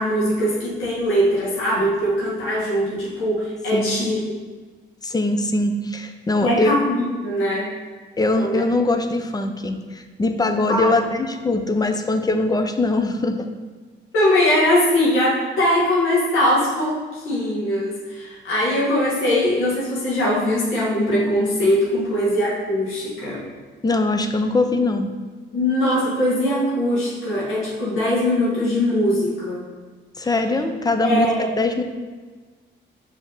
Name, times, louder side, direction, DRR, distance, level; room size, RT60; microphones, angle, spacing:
voice 1, 0.0-4.4 6.4-7.7 8.3-8.6 10.7-10.9 14.1-23.4 25.5-29.6 31.0-31.5, left 1 dB, 90° left, -7 dB, 1.7 m, -21 dB
voice 2, 5.0-6.8 8.2-13.5 23.8-25.1 30.2-31.3 31.5-31.8, left 2 dB, 20° left, 7 dB, 0.5 m, -22 dB
5.2 x 3.5 x 5.4 m, 1.4 s
cardioid pair, 90°, 20 cm